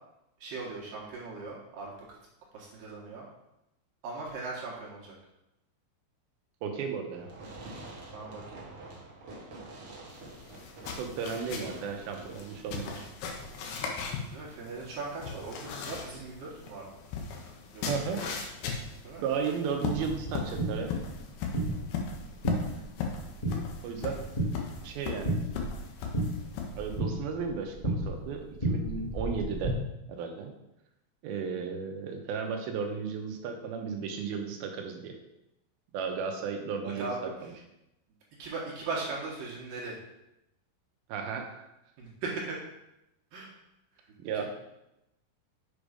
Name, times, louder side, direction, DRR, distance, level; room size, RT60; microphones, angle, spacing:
voice 1, 0.4-1.9 2.5-3.3 4.0-5.2 8.1-8.6 14.3-16.9 17.7-17.8 18.1-18.3 19.0-19.2 21.7-21.8 22.7-22.8 36.8-37.3 38.4-40.0 42.0-42.6 43.3-43.5, right 3 dB, 70° right, -4 dB, 2.9 m, -38 dB
voice 2, 6.6-7.3 10.9-13.1 17.9-18.2 19.2-20.9 23.8-24.2 24.8-25.3 26.8-29.8 30.1-30.5 31.2-35.2 35.9-37.1 37.4-37.5 41.1-41.7 44.2-44.5, right 6 dB, 85° right, 4 dB, 2.8 m, -34 dB
Fireworks, 7.1-13.1, right 2 dB, 50° right, 1.7 m, -47 dB
sound 1, 10.1-27.0, left 5 dB, 85° left, 3.0 m, -38 dB
sound 2, 19.9-29.7, right 1 dB, 15° left, 1.5 m, -34 dB
7.1 x 5.2 x 5.1 m, 0.88 s
omnidirectional pair, 4.3 m